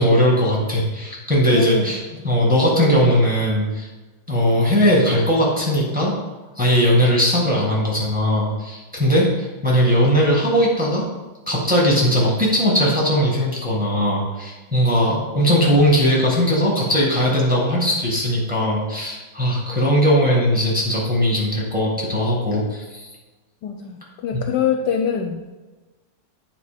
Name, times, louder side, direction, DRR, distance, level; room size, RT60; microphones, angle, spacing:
voice 1, 0.0-3.9 4.3-6.1 6.5-11.1 11.5-23.1 24.3-24.4, equal, 5° right, -3 dB, 1.6 m, -19 dB
voice 2, 1.5-1.9 2.2-2.3 23.6-25.5, left 7 dB, 70° left, 4 dB, 1.2 m, -24 dB
8.4 x 4.2 x 5.1 m, 1.2 s
omnidirectional pair, 2.1 m